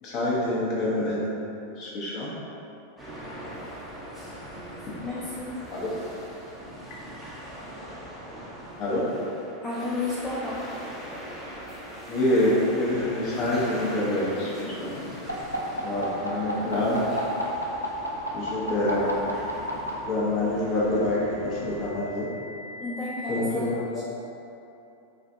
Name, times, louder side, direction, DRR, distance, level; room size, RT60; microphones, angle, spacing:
voice 1, 0.0-1.2 1.8-2.3 5.7-5.9 8.8-9.0 12.1-15.1 15.8-17.1 18.3-19.1 20.0-22.3 23.3-24.0, left 1 dB, 40° left, -6 dB, 0.9 m, -26 dB
sound 1, 3.0-21.9, right 1 dB, 5° right, 0.8 m, -41 dB
voice 2, 5.0-5.6 9.6-10.6 22.8-23.7, left 3 dB, 20° left, -8 dB, 0.5 m, -32 dB
sound 2, 15.3-19.9 21.0-23.3, equal, 90° left, 0.4 m, -34 dB
4.4 x 2.5 x 2.6 m, 2.8 s
figure-of-eight pair, 90°, 0 cm